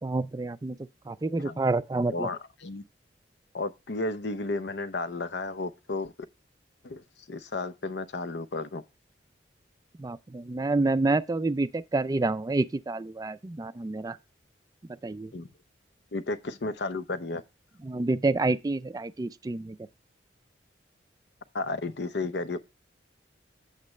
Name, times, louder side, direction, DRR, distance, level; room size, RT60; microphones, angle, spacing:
voice 1, 0.0-2.3 10.0-14.2 15.0-15.3 17.8-19.8, right 2 dB, 20° right, 0.3 m, -28 dB
voice 2, 2.1-2.8 3.5-6.1 6.8-7.0 7.3-8.8 15.3-15.5 16.1-17.4 21.5-22.6, left 3 dB, 65° left, 0.7 m, -33 dB
8.4 x 7.4 x 3.2 m
head